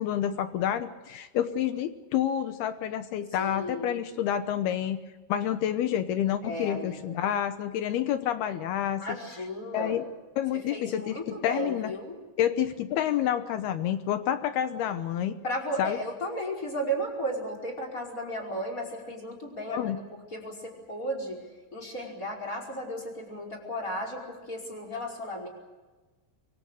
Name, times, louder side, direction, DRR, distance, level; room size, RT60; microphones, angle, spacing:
voice 1, 0.0-5.0 5.3-9.2 9.7-10.0 10.4-11.9 12.4-15.4 15.8-16.0 19.7-20.0, left 10 dB, 75° left, 10 dB, 2.4 m, -28 dB
voice 2, 3.4-3.9 6.4-7.2 9.0-10.0 10.5-12.2 15.4-19.9 20.3-21.4 21.7-25.5, equal, 15° left, 2 dB, 5.0 m, -34 dB
25.0 x 24.0 x 6.6 m, 1.2 s
omnidirectional pair, 5.6 m